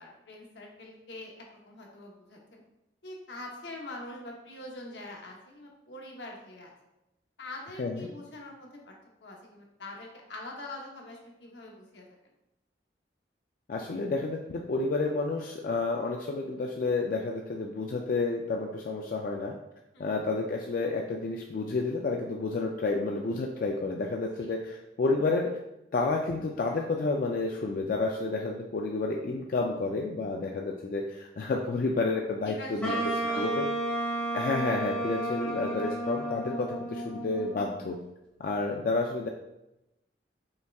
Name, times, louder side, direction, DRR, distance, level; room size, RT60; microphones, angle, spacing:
voice 1, 0.0-2.6 3.0-6.7 7.4-8.9 9.2-12.0 19.9-20.3 24.3-24.5 32.5-33.5, left 2 dB, 80° left, 0 dB, 0.9 m, -44 dB
voice 2, 13.7-19.5 20.0-25.6 25.9-33.7 34.3-38.0 38.4-39.3, left 3 dB, 55° left, 1 dB, 0.3 m, -30 dB
Wind instrument woodwind instrument, 32.8-37.8, right 1 dB, 10° left, 1.2 m, -32 dB
5.3 x 3.4 x 2.3 m, 0.90 s
head